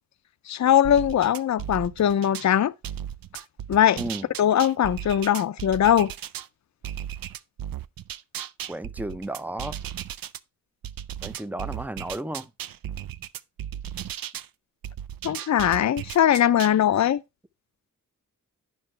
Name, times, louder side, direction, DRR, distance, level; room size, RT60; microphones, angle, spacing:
voice 1, 0.5-2.7 3.7-4.0 4.4-6.1 15.2-17.2, left 10 dB, 55° left, 0.5 m, -21 dB
sound 1, 0.8-2.5 2.8-6.5 6.8-10.4 10.8-14.5 14.8-16.8, right 10 dB, 75° right, 0.5 m, -36 dB
voice 2, 8.7-9.8 11.2-12.5, right 1 dB, 5° right, 0.5 m, -33 dB
9.8 x 5.4 x 4.4 m
wide cardioid pair, 95°, 34 cm